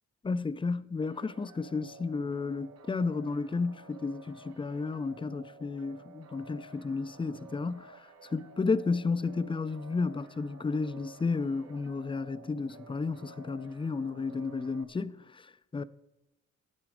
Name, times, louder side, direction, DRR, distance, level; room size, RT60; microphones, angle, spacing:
voice 1, 0.2-15.8, left 4 dB, 15° left, 0.5 m, -32 dB
sound 1, 1.0-14.8, right 3 dB, 55° right, 1.2 m, -53 dB
16.5 x 9.4 x 4.9 m
cardioid pair, 90°, 30 cm